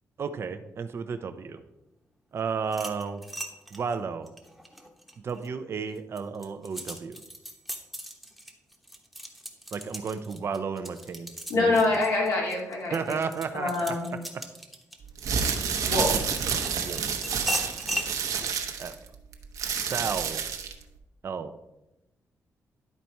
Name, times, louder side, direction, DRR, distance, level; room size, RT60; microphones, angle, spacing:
voice 1, 0.2-1.6 2.3-3.3 3.7-4.3 5.2-7.2 9.7-12.0 12.9-13.9 16.8-17.0 18.4-18.5 18.8-18.9 19.9-20.4 21.2-21.5, right 5 dB, 45° right, 8 dB, 0.6 m, -33 dB
sound 1, 2.6-5.5 6.0-16.1 16.6-18.1, equal, ahead, 1.0 m, -38 dB
voice 2, 11.5-13.2 13.5-14.1 15.8-16.2, left 2 dB, 80° left, -3 dB, 2.5 m, -25 dB
sound 2, 15.1-20.8, right 6 dB, 80° right, 0.9 m, -29 dB
10.5 x 4.1 x 4.5 m, 0.91 s
cardioid pair, 110°, 6 cm